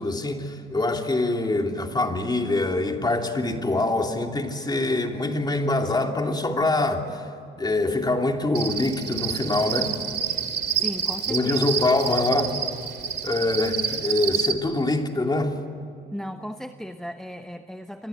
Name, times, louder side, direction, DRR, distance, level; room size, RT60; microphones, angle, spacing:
voice 1, 0.0-7.3 7.6-9.9 11.3-12.6 13.2-15.6, left 2 dB, 20° left, 3 dB, 3.1 m, -24 dB
Cricket, 8.5-14.5, right 8 dB, 55° right, 2.5 m, -28 dB
voice 2, 10.8-11.7 16.1-18.1, equal, 5° left, 8 dB, 1.1 m, -36 dB
30.0 x 23.5 x 8.2 m, 2.7 s
cardioid pair, 90°, 20 cm